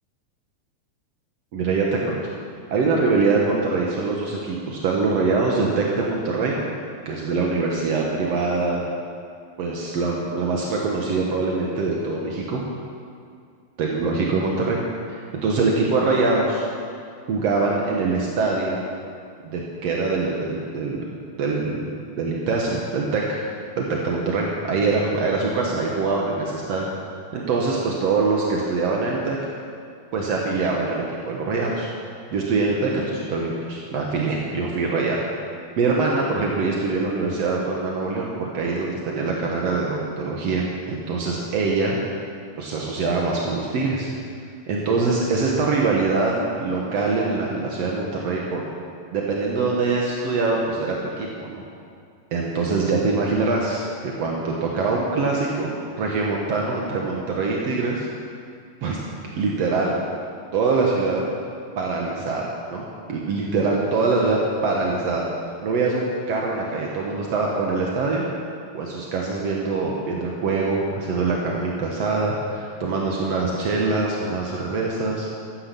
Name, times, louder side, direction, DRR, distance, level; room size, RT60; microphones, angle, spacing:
voice 1, 1.5-2.2 2.7-6.6 7.0-8.8 9.6-12.6 13.8-14.8 15.4-16.6 17.3-18.8 19.5-21.0 21.4-21.9 22.2-23.4 23.7-26.9 27.3-29.4 30.1-31.9 32.3-35.2 35.8-42.0 42.6-44.1 44.7-48.6 49.1-51.6 52.3-55.7 56.0-58.1 58.8-59.0 59.4-59.9 60.5-61.2 61.8-65.2 65.6-68.2 68.7-75.3, right 3 dB, 65° right, -2 dB, 1.7 m, -23 dB
14.5 x 12.5 x 7.0 m, 2.3 s
omnidirectional pair, 4.8 m